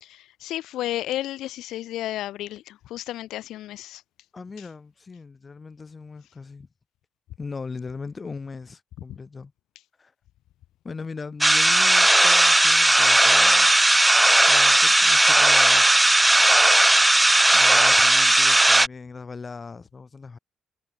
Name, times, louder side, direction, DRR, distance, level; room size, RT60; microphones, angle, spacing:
voice 1, 0.0-4.0, left 14 dB, 85° left, 0.9 m, -32 dB
voice 2, 4.3-6.7 7.4-9.5 10.0-10.1 10.8-13.7 14.5-15.9 17.5-20.4, left 4 dB, 30° left, 3.8 m, -39 dB
sound 1, 11.4-18.9, right 1 dB, 10° right, 0.9 m, -17 dB
cardioid pair, 90°, 0 cm